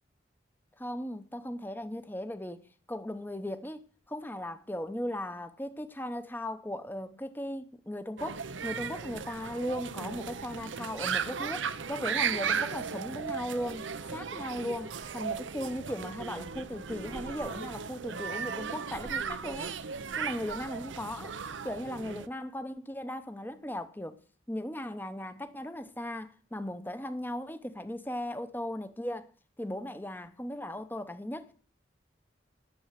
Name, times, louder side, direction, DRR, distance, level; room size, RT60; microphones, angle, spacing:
voice 1, 0.8-3.8 4.1-19.8 20.2-21.4 21.6-24.2 24.5-29.3 29.6-31.5, left 1 dB, 10° left, 0.7 m, -37 dB
sound 1, 8.2-22.3, right 6 dB, 90° right, 0.8 m, -36 dB
10.5 x 6.9 x 8.2 m
head